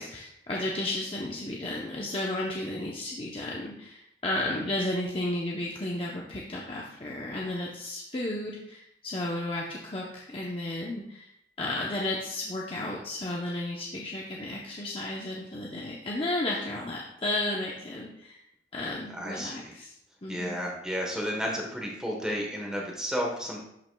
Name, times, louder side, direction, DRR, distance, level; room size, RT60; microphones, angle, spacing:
voice 1, 0.0-11.3 11.6-18.4 18.7-19.9 20.2-20.6, left 1 dB, 30° left, -3 dB, 0.7 m, -33 dB
voice 2, 19.1-19.7 20.3-23.6, equal, 5° right, -1 dB, 1.1 m, -32 dB
11.0 x 5.8 x 2.2 m, 0.77 s
head